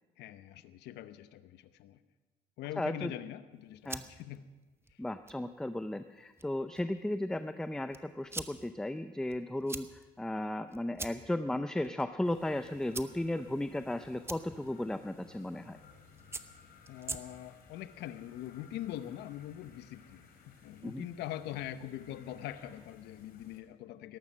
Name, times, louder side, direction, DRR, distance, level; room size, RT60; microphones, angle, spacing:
voice 1, 0.2-2.0 2.6-4.4 16.9-24.2, left 12 dB, 85° left, 12 dB, 0.9 m, -43 dB
voice 2, 2.8-3.1 3.9-4.0 5.0-15.8 20.8-21.1, left 1 dB, 5° left, 10 dB, 0.5 m, -35 dB
sound 1, 3.5-17.7, right 3 dB, 15° right, 0.9 m, -48 dB
sound 2, 12.2-23.6, left 6 dB, 65° left, 3.0 m, -59 dB
18.5 x 13.5 x 5.5 m, 1.2 s
cardioid pair, 110°, 17 cm